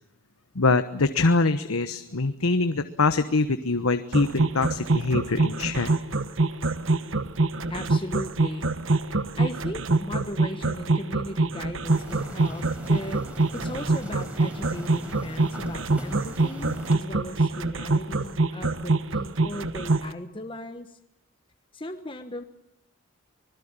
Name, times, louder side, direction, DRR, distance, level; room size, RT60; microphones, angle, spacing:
voice 1, 0.5-5.9, left 3 dB, 85° left, 10 dB, 1.2 m, -24 dB
sound 1, 4.1-20.1, right 3 dB, 65° right, 1.2 m, -25 dB
voice 2, 7.7-8.7 9.1-13.2 13.5-21.0 21.7-22.4, left 1 dB, 25° left, 6 dB, 1.3 m, -37 dB
sound 2, 11.9-16.9, equal, 5° right, 4.3 m, -40 dB
25.5 x 21.0 x 8.9 m, 0.77 s
head